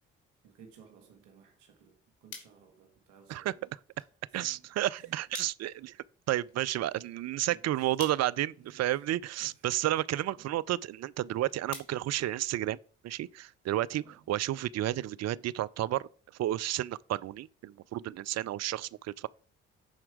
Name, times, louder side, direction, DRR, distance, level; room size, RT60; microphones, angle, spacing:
voice 1, 0.4-3.6 4.3-5.2 7.5-7.9 8.6-9.1 9.4-9.7 10.3-10.5 14.0-14.3, right 7 dB, 85° right, 1.4 m, -58 dB
sound 1, 1.7-13.0, left 6 dB, 75° left, 2.1 m, -54 dB
voice 2, 4.3-6.0 6.3-12.8 13.0-16.1 16.4-19.3, right 14 dB, 55° right, 0.5 m, -31 dB
10.0 x 4.4 x 4.9 m
hypercardioid pair, 50°, 31 cm